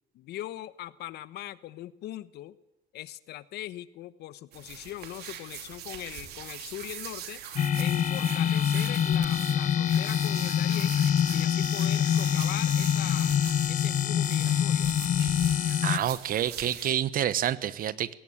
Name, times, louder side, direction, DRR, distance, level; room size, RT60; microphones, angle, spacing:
voice 1, 0.1-2.6 2.9-7.4 7.8-11.0 11.3-13.3 13.7-15.2, left 14 dB, 75° left, 16 dB, 1.1 m, -41 dB
sound 1, 4.5-16.9, right 9 dB, 75° right, 3.4 m, -42 dB
sound 2, 7.6-16.0, left 9 dB, 50° left, 1.0 m, -25 dB
voice 2, 15.8-18.1, right 11 dB, 60° right, 16 dB, 1.1 m, -28 dB
21.0 x 17.5 x 8.9 m, 0.86 s
cardioid pair, 110°, 17 cm